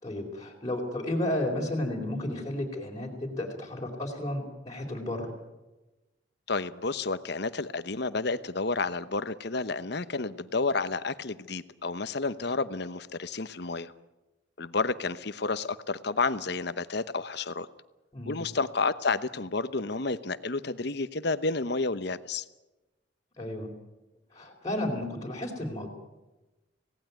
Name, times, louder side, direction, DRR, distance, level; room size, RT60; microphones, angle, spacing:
voice 1, 0.0-5.3 18.1-18.4 23.4-23.7 24.3-25.9, left 1 dB, 20° left, -3 dB, 4.2 m, -32 dB
voice 2, 6.5-13.9 14.6-17.7 18.3-22.4, left 3 dB, 55° left, 13 dB, 1.0 m, -30 dB
26.0 x 18.0 x 9.5 m, 1.1 s
head